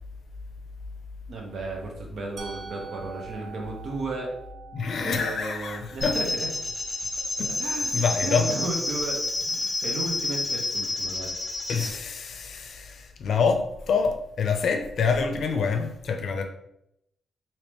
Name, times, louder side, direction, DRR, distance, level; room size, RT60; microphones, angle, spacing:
voice 1, 1.3-4.3 5.0-6.5 7.4-11.3, right 2 dB, 60° right, 0 dB, 0.9 m, -34 dB
Musical instrument, 2.4-8.3, right 5 dB, 80° right, 0.5 m, -46 dB
voice 2, 4.7-6.2 7.4-7.5 7.9-8.5 11.7-16.4, left 5 dB, 60° left, 5 dB, 0.5 m, -26 dB
sound 1, 6.0-11.9, left 2 dB, 15° left, 1.3 m, -29 dB
3.4 x 2.8 x 3.0 m, 0.80 s
cardioid pair, 130°, 0 cm